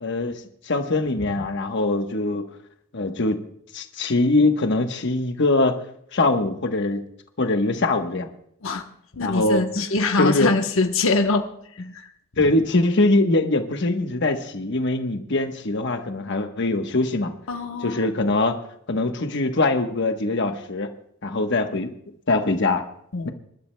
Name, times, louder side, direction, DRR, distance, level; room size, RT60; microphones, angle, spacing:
voice 1, 0.0-2.4 2.9-3.4 3.7-5.8 6.1-7.0 7.4-8.3 9.2-9.9 10.1-10.5 12.4-17.3 17.8-18.6 18.9-20.9 21.2-21.9 22.3-22.8 23.2-23.3, left 2 dB, 60° left, 6 dB, 1.1 m, -22 dB
voice 2, 9.1-11.5 11.9-12.1 17.5-18.1 23.1-23.3, left 3 dB, 85° left, 4 dB, 1.0 m, -23 dB
26.5 x 12.0 x 2.2 m, 0.70 s
head